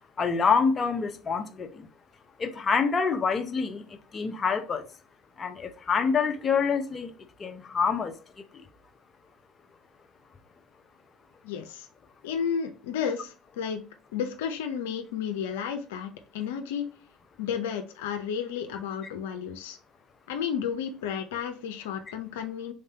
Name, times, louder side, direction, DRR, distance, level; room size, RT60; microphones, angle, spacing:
voice 1, 0.2-1.9 2.4-4.8 5.4-7.1 7.4-8.2 8.5-8.6, left 5 dB, 35° left, 0.7 m, -26 dB
voice 2, 11.4-11.9 12.2-13.8 14.1-16.9 17.4-19.8 20.3-22.7, left 7 dB, 80° left, 0.6 m, -32 dB
3.8 x 3.3 x 2.7 m
hypercardioid pair, 75°, 0 cm